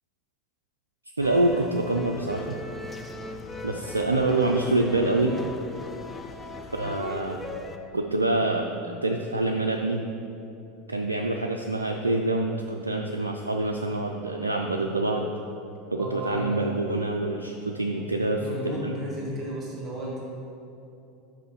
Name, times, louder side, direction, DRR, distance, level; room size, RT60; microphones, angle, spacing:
sound 1, 1.2-7.8, left 2 dB, 15° left, 0.5 m, -39 dB
voice 1, 1.2-2.6 3.6-5.3 6.7-7.4 7.9-10.0 10.9-15.3 15.9-18.9, right 2 dB, 85° right, 2 dB, 0.3 m, -26 dB
voice 2, 16.0-16.6 18.4-20.2, equal, 30° right, -4 dB, 1.4 m, -33 dB
5.7 x 4.9 x 5.0 m, 2.8 s
figure-of-eight pair, 80°, 0 cm